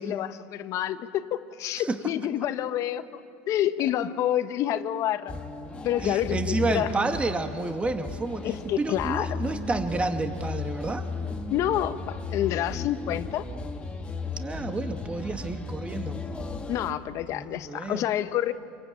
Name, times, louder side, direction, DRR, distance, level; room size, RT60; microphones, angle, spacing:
voice 1, 0.0-5.3 5.8-6.9 8.4-9.3 11.5-13.5 16.7-18.5, left 12 dB, 55° left, 11 dB, 1.2 m, -28 dB
sound 1, 5.3-16.9, left 4 dB, 15° left, 2.1 m, -35 dB
voice 2, 6.0-11.1 14.4-16.2 17.3-18.1, right 3 dB, 20° right, 6 dB, 2.1 m, -30 dB
27.5 x 22.5 x 8.9 m, 2.4 s
supercardioid pair, 100°, 6 cm